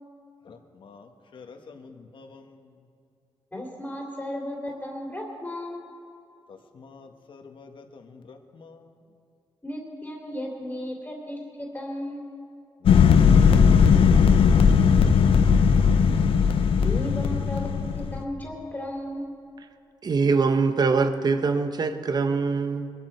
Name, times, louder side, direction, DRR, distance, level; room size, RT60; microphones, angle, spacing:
voice 1, 0.4-2.7 6.5-9.0, left 4 dB, 60° left, 5 dB, 1.5 m, -48 dB
voice 2, 3.5-5.8 9.6-12.2 16.8-19.3, left 1 dB, 20° left, -1 dB, 2.7 m, -35 dB
sound 1, 12.9-18.2, left 6 dB, 80° left, 0.8 m, -18 dB
voice 3, 20.0-22.9, right 4 dB, 45° right, 9 dB, 0.9 m, -23 dB
21.5 x 12.5 x 4.6 m, 2.5 s
cardioid pair, 90°, 9 cm